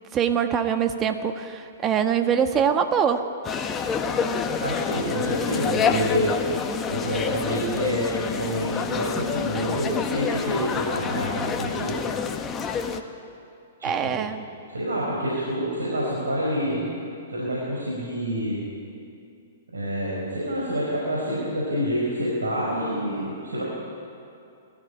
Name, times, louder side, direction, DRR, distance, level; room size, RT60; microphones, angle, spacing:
voice 1, 0.1-3.3 13.8-14.5, right 7 dB, 25° right, 7 dB, 1.5 m, -23 dB
sound 1, 3.4-13.0, left 6 dB, 20° left, 1.4 m, -27 dB
voice 2, 4.6-6.3 6.9-12.0 13.8-14.3 14.7-16.9 17.3-18.6 19.7-23.6, equal, 85° right, -5 dB, 5.2 m, -27 dB
21.5 x 14.0 x 10.0 m, 2.6 s
hypercardioid pair, 115°, 0 cm